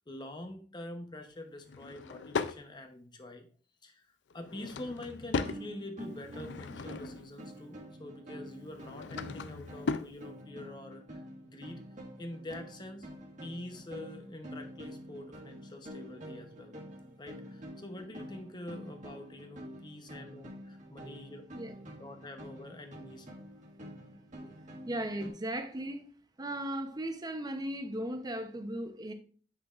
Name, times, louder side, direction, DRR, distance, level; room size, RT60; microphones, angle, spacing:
voice 1, 0.1-3.5 3.8-4.1 4.3-11.8 12.2-13.1 13.4-16.8 17.2-21.4 21.8-23.3 25.1-25.2, left 1 dB, 25° left, 0.9 m, -45 dB
Drawer open or close / Wood, 1.6-2.6 4.3-5.6 6.1-7.3 8.6-10.1, left 4 dB, 85° left, 0.5 m, -37 dB
sound 1, 5.3-25.3, equal, 45° right, 1.6 m, -48 dB
voice 2, 24.9-26.0 26.4-29.1, right 1 dB, 25° right, 0.8 m, -36 dB
8.0 x 6.0 x 2.5 m
head